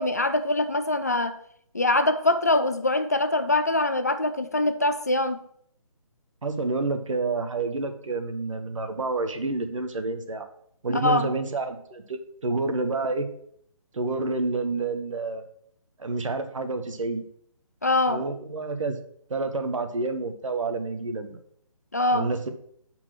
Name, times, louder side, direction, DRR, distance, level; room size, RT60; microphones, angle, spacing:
voice 1, 0.0-1.4 1.7-5.4 10.9-11.3 17.8-18.2 21.9-22.3, left 2 dB, 30° left, 0.4 m, -23 dB
voice 2, 6.4-10.5 10.8-13.3 13.9-15.4 16.0-17.2 18.1-19.0 19.3-21.4 22.1-22.5, right 3 dB, 60° right, 1.2 m, -29 dB
7.5 x 4.5 x 5.9 m
hypercardioid pair, 175°, 18 cm